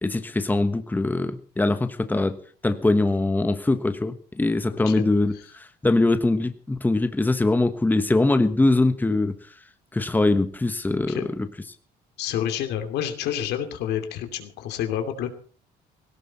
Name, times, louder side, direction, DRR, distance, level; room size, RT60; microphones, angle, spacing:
voice 1, 0.0-2.4 2.6-5.3 5.8-9.3 9.9-11.5, left 2 dB, 10° left, 10 dB, 1.2 m, -22 dB
voice 2, 4.7-5.0 11.0-11.3 12.2-15.3, left 10 dB, 80° left, 7 dB, 2.7 m, -29 dB
17.5 x 17.0 x 4.3 m, 0.42 s
cardioid pair, 110°, 17 cm